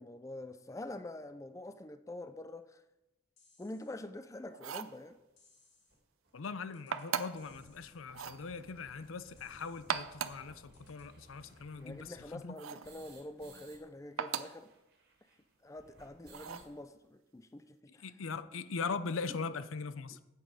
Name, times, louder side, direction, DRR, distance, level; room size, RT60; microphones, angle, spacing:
voice 1, 0.0-2.8 3.6-5.2 11.8-14.7 15.6-18.0 19.3-19.4 20.1-20.2, left 1 dB, 15° left, 0.4 m, -46 dB
sound 1, 3.4-4.0 5.4-6.0 6.7-7.1 7.4-8.0 9.4-10.0 10.7-11.1, left 4 dB, 55° left, 2.3 m, -67 dB
sound 2, 4.5-5.0 6.9-7.5 8.1-8.4 9.7-10.5 12.6-12.9 14.2-14.6 16.3-16.7, right 7 dB, 85° right, 0.5 m, -38 dB
sound 3, 5.1-5.2 5.9-6.0 6.2-6.3 6.6-6.7 7.1-13.8 14.1-14.2 14.4-16.7, right 2 dB, 50° right, 2.0 m, -60 dB
voice 2, 6.3-12.5 18.0-20.2, left 4 dB, 85° left, 0.6 m, -40 dB
9.0 x 8.3 x 4.9 m
head